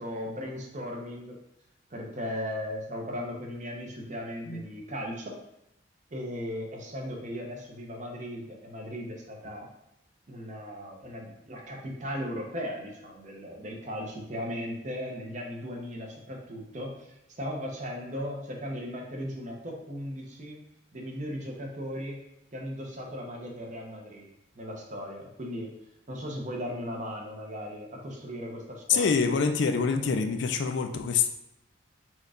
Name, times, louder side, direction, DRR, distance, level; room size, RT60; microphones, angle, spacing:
voice 1, 0.0-1.4 1.9-5.4 6.1-9.7 10.3-20.6 20.9-22.2 22.5-24.3 24.5-25.8 26.1-29.2, equal, 35° right, 0 dB, 0.7 m, -37 dB
voice 2, 28.9-31.3, left 5 dB, 60° left, 7 dB, 0.4 m, -25 dB
4.5 x 2.3 x 4.8 m, 0.83 s
head